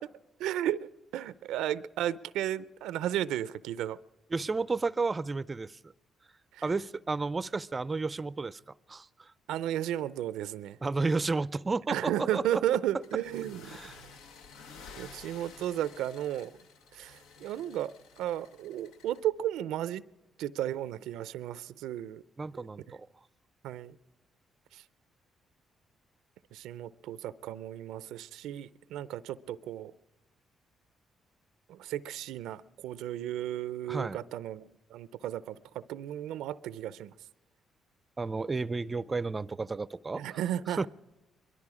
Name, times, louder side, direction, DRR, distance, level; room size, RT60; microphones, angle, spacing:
voice 1, 0.4-4.0 6.5-6.6 9.5-10.8 11.9-14.2 15.0-16.6 16.9-20.0 20.4-22.2 22.5-23.0 23.6-24.0 24.7-24.8 26.5-29.9 31.7-37.1 40.2-40.9, right 12 dB, 90° right, 0.4 m, -34 dB
voice 2, 4.3-5.9 6.6-8.6 8.9-9.3 10.8-12.6 13.7-14.0 22.4-23.1 33.9-34.2 38.2-40.4 40.8-40.9, right 3 dB, 25° right, 0.4 m, -32 dB
sound 1, 13.0-19.3, left 5 dB, 90° left, 1.0 m, -52 dB
22.0 x 12.5 x 4.8 m
cardioid pair, 90°, 0 cm